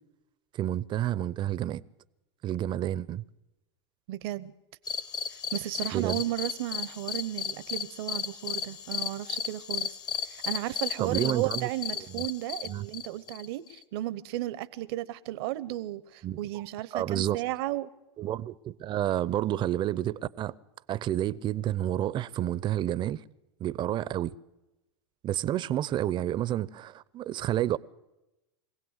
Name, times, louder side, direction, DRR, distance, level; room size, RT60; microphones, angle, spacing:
voice 1, 0.5-1.8 2.4-3.2 5.9-6.2 11.0-11.7 12.1-12.2 12.7-12.8 16.2-16.4 16.9-17.4 18.2-20.5 20.9-23.2 23.6-24.3 25.2-27.8, right 12 dB, 35° right, 0.8 m, -29 dB
voice 2, 4.1-4.5 5.3-9.9 10.3-17.9, right 15 dB, 60° right, 1.0 m, -34 dB
sound 1, 4.9-13.8, left 7 dB, 30° left, 1.1 m, -35 dB
24.0 x 17.0 x 8.1 m
hypercardioid pair, 110°, 14 cm